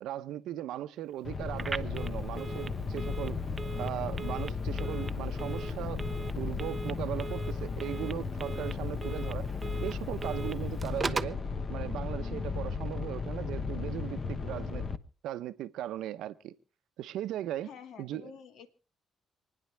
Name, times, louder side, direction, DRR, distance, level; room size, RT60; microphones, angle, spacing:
voice 1, 0.0-3.4 3.8-9.5 9.8-11.4 11.7-14.9 15.2-16.5 17.0-17.7 18.0-18.3, right 12 dB, 85° right, 0.7 m, -38 dB
sound 1, 1.2-15.0, left 4 dB, 40° left, 0.9 m, -35 dB
Telephone, 1.5-11.4, right 4 dB, 30° right, 0.6 m, -40 dB
voice 2, 17.6-18.7, left 7 dB, 75° left, 1.4 m, -49 dB
27.5 x 10.0 x 3.4 m
cardioid pair, 90°, 0 cm